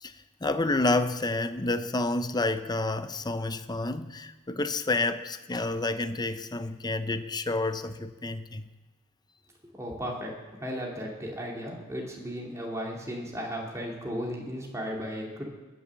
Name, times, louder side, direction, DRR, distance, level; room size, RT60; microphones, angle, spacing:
voice 1, 0.0-8.7, left 2 dB, 20° left, 11 dB, 0.7 m, -29 dB
voice 2, 9.7-10.3 10.6-15.4, equal, 15° right, -2 dB, 2.6 m, -35 dB
20.5 x 7.0 x 7.4 m, 1.2 s
head